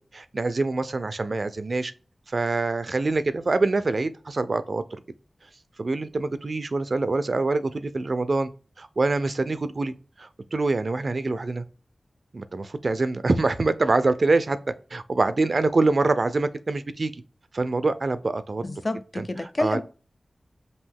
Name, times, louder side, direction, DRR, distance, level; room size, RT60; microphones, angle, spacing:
voice 1, 0.1-1.9 2.3-4.8 5.8-8.5 8.8-9.9 10.2-11.6 12.3-14.6 14.9-17.2 17.5-18.6 19.2-19.8, right 3 dB, 60° right, 0.5 m, -25 dB
voice 2, 18.6-19.8, left 2 dB, 40° left, 0.5 m, -29 dB
5.4 x 2.7 x 3.4 m
wide cardioid pair, 65°, 0 cm